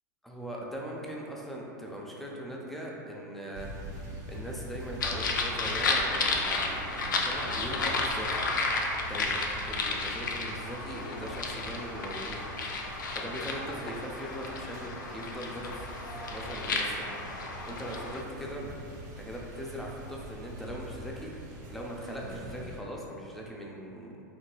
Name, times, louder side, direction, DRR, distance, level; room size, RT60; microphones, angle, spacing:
voice 1, 0.2-3.7 4.3-8.5 9.0-12.5 13.1-15.8 16.1-17.1 17.7-18.7 19.2-21.3 21.7-24.2, equal, ahead, -3 dB, 0.4 m, -40 dB
sound 1, 3.5-22.8, right 1 dB, 60° right, 0.6 m, -44 dB
sound 2, 5.0-18.2, left 3 dB, 90° left, 0.4 m, -32 dB
3.0 x 2.8 x 2.3 m, 2.6 s
hypercardioid pair, 110°, 10 cm